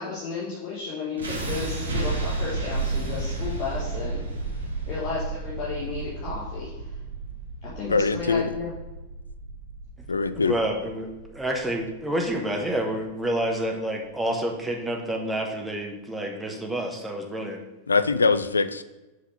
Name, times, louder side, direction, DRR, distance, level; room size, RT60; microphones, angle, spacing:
voice 1, 0.0-4.2 4.9-6.9 7.6-8.7, left 4 dB, 40° left, -7 dB, 1.7 m, -33 dB
sound 1, 1.2-13.2, right 3 dB, 70° right, 1.4 m, -32 dB
voice 2, 7.9-8.5 10.1-10.6 17.9-18.8, left 4 dB, 75° left, 13 dB, 0.3 m, -22 dB
voice 3, 10.4-17.6, right 1 dB, 5° right, 1 dB, 1.2 m, -29 dB
5.7 x 4.9 x 5.8 m, 1.1 s
figure-of-eight pair, 90°, 0 cm